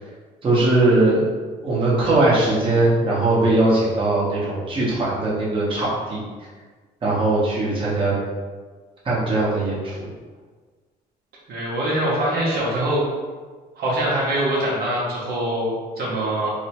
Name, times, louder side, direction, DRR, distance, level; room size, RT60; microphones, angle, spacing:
voice 1, 0.4-1.3 1.6-6.2 7.0-8.1 9.0-10.0, right 2 dB, 30° right, -7 dB, 0.9 m, -20 dB
voice 2, 11.5-13.0 13.8-16.5, right 1 dB, 65° right, -6 dB, 0.8 m, -23 dB
2.8 x 2.1 x 2.8 m, 1.4 s
cardioid pair, 110°, 17 cm